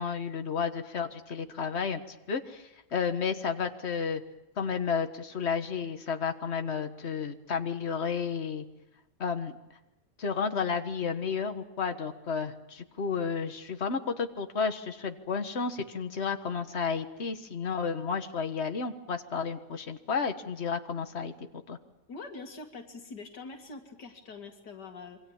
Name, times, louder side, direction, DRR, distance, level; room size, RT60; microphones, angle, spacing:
voice 1, 0.0-2.0 2.3-2.6 2.9-4.2 4.6-8.7 9.2-9.5 10.2-21.3 21.7-21.8, left 6 dB, 40° left, 7 dB, 1.7 m, -32 dB
voice 2, 22.1-25.2, left 3 dB, 85° left, 3 dB, 2.6 m, -44 dB
27.5 x 24.0 x 7.3 m, 1.0 s
omnidirectional pair, 1.8 m